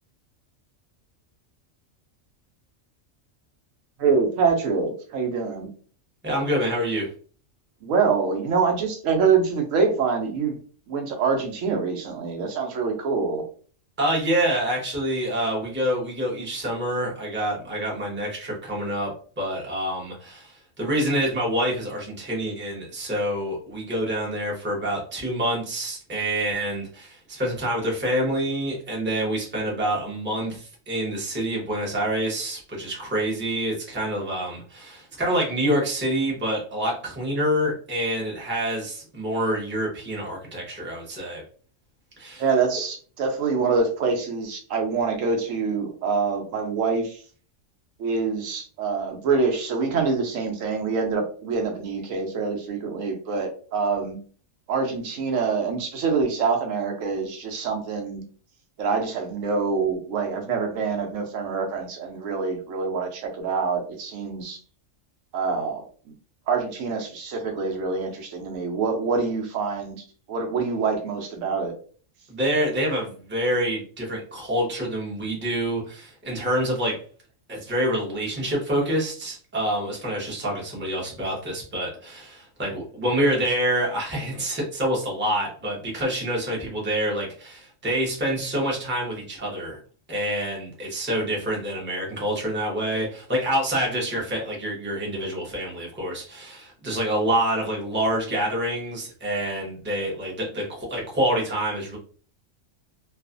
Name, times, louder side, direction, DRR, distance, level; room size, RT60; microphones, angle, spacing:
voice 1, 4.0-5.7 7.8-10.6 10.9-13.4 42.4-47.2 48.0-54.2 54.7-58.2 58.8-64.6 65.3-65.8 66.5-70.0 70.3-71.7, right 5 dB, 80° right, 3 dB, 1.0 m, -25 dB
voice 2, 6.2-7.1 14.0-41.4 42.2-42.5 72.3-77.0 77.5-89.8 90.1-102.0, right 1 dB, 10° right, -3 dB, 0.6 m, -27 dB
2.4 x 2.3 x 2.4 m, 0.42 s
omnidirectional pair, 1.4 m